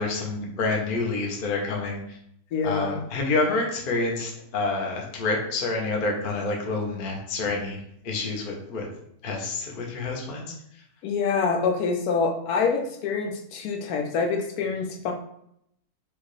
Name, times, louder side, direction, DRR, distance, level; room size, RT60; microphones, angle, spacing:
voice 1, 0.0-2.2 2.6-8.9 9.2-10.8, left 3 dB, 45° left, 0 dB, 0.7 m, -28 dB
voice 2, 2.5-3.0 11.0-15.1, left 5 dB, 80° left, 3 dB, 1.0 m, -26 dB
4.6 x 2.4 x 3.1 m, 0.72 s
omnidirectional pair, 1.6 m